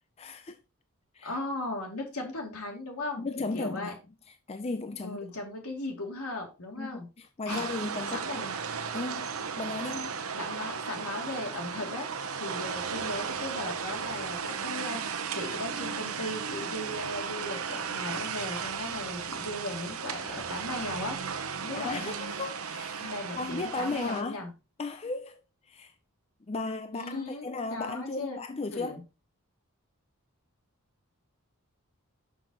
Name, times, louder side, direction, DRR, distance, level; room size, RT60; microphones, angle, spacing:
voice 1, 0.2-0.6 1.1-1.3 3.2-4.0 4.5-5.2 6.8-8.3 8.9-9.3 9.6-10.2 21.8-24.4 24.8-25.4 25.7-25.9 26.5-29.0, left 3 dB, 25° left, 0.4 m, -35 dB
voice 2, 1.2-3.9 5.0-7.1 7.5-7.6 8.1-8.6 10.4-12.1 12.4-22.2 23.0-24.5 26.9-28.4 28.7-29.0, left 2 dB, 80° left, 2.4 m, -37 dB
sound 1, 7.5-24.2, right 6 dB, 70° right, 0.8 m, -35 dB
6.1 x 6.0 x 3.9 m
head